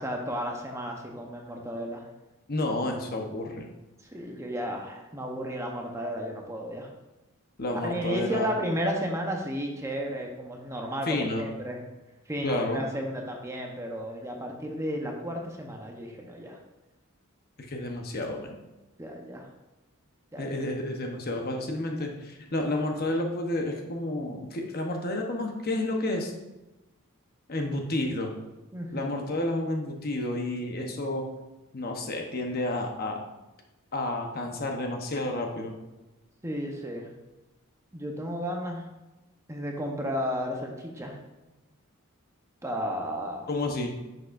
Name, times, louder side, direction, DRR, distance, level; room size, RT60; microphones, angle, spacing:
voice 1, 0.0-2.0 4.1-6.9 7.8-11.8 12.3-16.6 19.0-19.5 20.3-20.6 28.7-29.2 36.4-37.1 37.9-38.8 39.5-41.2 42.6-43.5, equal, 15° right, 1 dB, 0.8 m, -33 dB
voice 2, 2.5-3.7 7.6-8.5 11.0-11.5 12.4-12.8 17.6-18.6 20.4-26.3 27.5-28.3 28.9-31.3 31.7-33.2 33.9-35.7 43.5-43.9, left 1 dB, 45° left, 2 dB, 0.9 m, -30 dB
10.0 x 6.4 x 2.5 m, 1.0 s
head